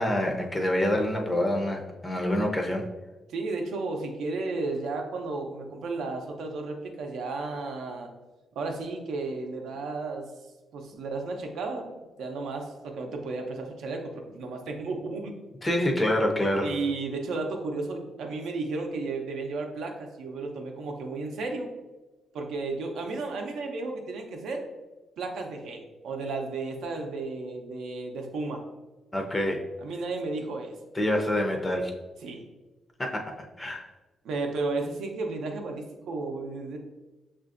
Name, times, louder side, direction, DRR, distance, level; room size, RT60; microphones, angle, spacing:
voice 1, 0.0-2.8 15.6-16.7 29.1-29.6 30.9-31.9 33.0-33.8, left 1 dB, 20° left, 2 dB, 0.4 m, -26 dB
voice 2, 3.3-8.1 8.6-10.3 10.7-15.3 16.6-21.7 22.3-24.6 25.2-28.6 29.8-30.8 32.2-32.5 34.2-36.8, right 3 dB, 85° right, 3 dB, 0.5 m, -33 dB
5.7 x 2.5 x 2.4 m, 1.1 s
cardioid pair, 110°, 0 cm